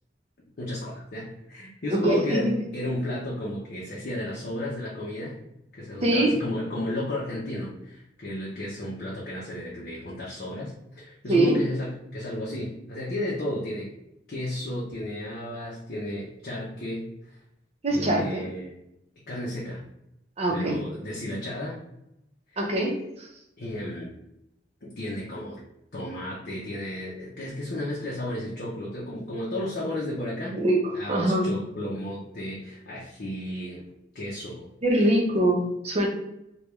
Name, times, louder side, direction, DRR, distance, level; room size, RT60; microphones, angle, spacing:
voice 1, 0.6-5.4 5.7-13.9 14.3-17.4 17.9-18.8 19.3-19.8 20.5-21.8 22.5-22.7 23.6-24.1 24.8-25.6 25.9-30.6 30.9-33.8 34.1-34.7 34.9-35.1, left 1 dB, 55° left, -6 dB, 0.7 m, -33 dB
voice 2, 1.9-2.4 6.0-6.4 11.3-11.6 17.8-18.4 20.4-20.8 22.6-23.3 30.5-30.8 31.1-31.5 34.8-36.1, right 1 dB, 35° right, 0 dB, 0.7 m, -23 dB
3.3 x 2.3 x 3.0 m, 0.83 s
head